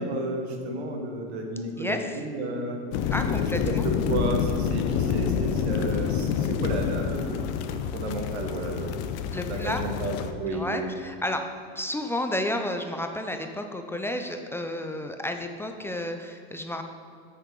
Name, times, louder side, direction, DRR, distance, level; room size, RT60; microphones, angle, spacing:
voice 1, 0.0-2.8 3.4-3.7 4.1-10.9, right 2 dB, 85° right, 3 dB, 1.4 m, -32 dB
voice 2, 1.8-2.2 3.1-3.8 9.3-9.8 10.5-11.4 11.8-16.8, left 1 dB, 10° left, 5 dB, 0.4 m, -31 dB
sound 1, 2.9-10.3, left 7 dB, 50° left, 0.6 m, -28 dB
9.3 x 6.6 x 3.8 m, 2.3 s
supercardioid pair, 115°, 32 cm